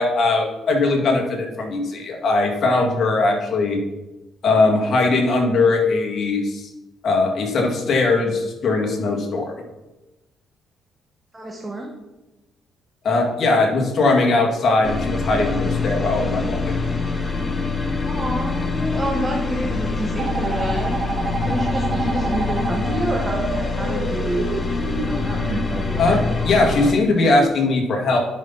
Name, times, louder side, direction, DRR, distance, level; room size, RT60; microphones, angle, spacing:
voice 1, 0.0-3.8 4.4-6.7 7.0-9.5 13.0-16.8 26.0-26.2 26.5-28.2, left 3 dB, 55° left, 0 dB, 2.1 m, -20 dB
voice 2, 11.3-11.9 15.7-15.9 18.1-21.0 21.4-24.5 25.1-26.2, right 1 dB, 15° right, -1 dB, 1.3 m, -28 dB
sound 1, 14.8-26.9, left 3 dB, 30° left, 1.1 m, -25 dB
sound 2, 20.2-25.6, right 3 dB, 70° right, 1.8 m, -29 dB
10.0 x 5.8 x 4.1 m, 1.0 s
cardioid pair, 90°, 0 cm